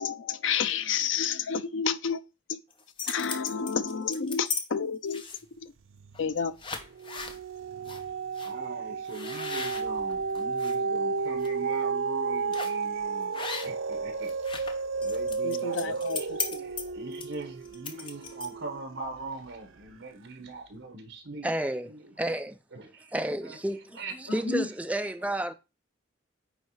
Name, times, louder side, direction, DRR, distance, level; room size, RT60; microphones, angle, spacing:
voice 1, 0.0-2.2 2.5-2.6 3.1-5.2 5.6-5.7 6.2-6.5 15.4-16.6 24.5-24.7, left 6 dB, 75° left, 0.5 m, -30 dB
sound 1, 2.7-4.6 5.1-5.6 6.1-6.3 6.6-7.4 7.9-8.0 8.4-8.5 9.1-10.8 11.2-11.5 12.5-12.8 13.3-13.9 14.2-18.7, left 5 dB, 25° left, 0.8 m, -37 dB
sound 2, 5.9-6.4 6.8-19.3 19.8-19.9, right 4 dB, 85° right, 0.5 m, -32 dB
voice 2, 8.4-14.3 15.0-16.3 16.6-21.5 21.9-22.1 22.7-23.1 23.4-23.6 23.9-24.4 25.0-25.1, right 3 dB, 70° right, 1.1 m, -41 dB
voice 3, 21.4-21.9 22.2-22.6 23.1-25.5, right 1 dB, 5° right, 0.4 m, -31 dB
9.0 x 3.2 x 4.7 m
head